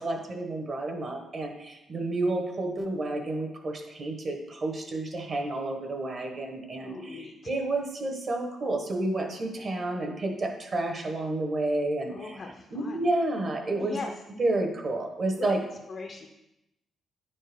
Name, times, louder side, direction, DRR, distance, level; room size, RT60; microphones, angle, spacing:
voice 1, 0.0-12.4 12.7-14.0 14.4-15.6, right 2 dB, 35° right, 2 dB, 1.1 m, -30 dB
voice 2, 6.8-7.5 9.6-9.7 12.1-13.1 13.7-14.1 15.4-16.3, left 3 dB, 40° left, 2 dB, 0.5 m, -40 dB
9.7 x 4.3 x 3.4 m, 0.90 s
cardioid pair, 170°, 0 cm